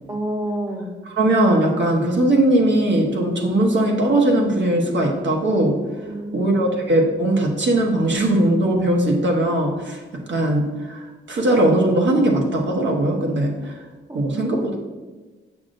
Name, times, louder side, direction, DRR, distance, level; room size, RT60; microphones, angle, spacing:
voice 1, 0.1-0.9 6.0-6.7 14.1-14.4, right 1 dB, 15° right, 2 dB, 1.1 m, -29 dB
voice 2, 1.1-5.8 6.3-10.0 10.3-11.0 11.3-13.7 14.1-14.8, right 1 dB, 60° right, 1 dB, 1.1 m, -19 dB
7.5 x 5.9 x 2.6 m, 1.3 s
cardioid pair, 95°, 21 cm